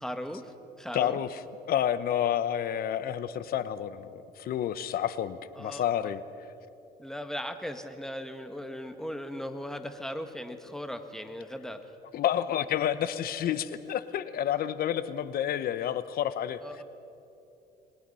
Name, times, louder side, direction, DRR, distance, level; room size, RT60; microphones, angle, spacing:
voice 1, 0.0-1.2 5.5-6.1 7.0-11.8 16.6-16.8, equal, 5° left, 7 dB, 1.6 m, -38 dB
voice 2, 0.9-1.4 1.7-6.2 12.1-16.6, left 10 dB, 60° left, 14 dB, 1.0 m, -29 dB
28.0 x 21.5 x 5.6 m, 2.8 s
cardioid pair, 110°, 17 cm